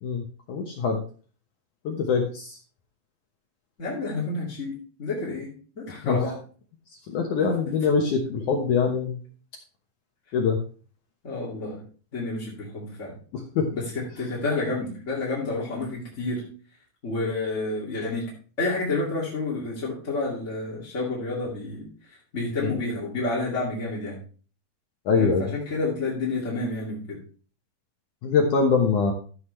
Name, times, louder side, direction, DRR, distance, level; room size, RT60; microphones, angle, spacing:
voice 1, 0.0-1.0 1.8-2.6 6.0-6.3 7.1-9.2 10.3-10.6 13.3-13.7 22.6-22.8 25.1-25.5 28.2-29.1, left 5 dB, 75° left, 1 dB, 1.8 m, -24 dB
voice 2, 3.8-5.5 5.7-6.3 11.2-11.8 12.1-13.1 13.7-16.4 17.0-18.3 18.6-21.8 22.3-24.1 25.1-27.2, left 2 dB, 25° left, -6 dB, 1.8 m, -29 dB
13.0 x 8.0 x 3.3 m, 0.40 s
omnidirectional pair, 5.2 m